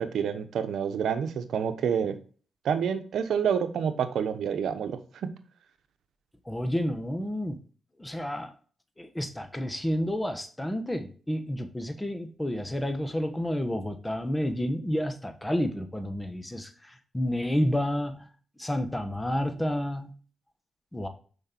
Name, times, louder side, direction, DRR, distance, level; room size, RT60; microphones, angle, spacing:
voice 1, 0.0-2.2 2.6-5.3, right 7 dB, 80° right, 9 dB, 0.9 m, -28 dB
voice 2, 6.5-7.6 8.0-8.5 9.0-18.3 18.6-20.1 20.9-21.1, equal, 10° left, 7 dB, 1.2 m, -30 dB
6.5 x 5.3 x 4.4 m, 0.40 s
cardioid pair, 65°, 0 cm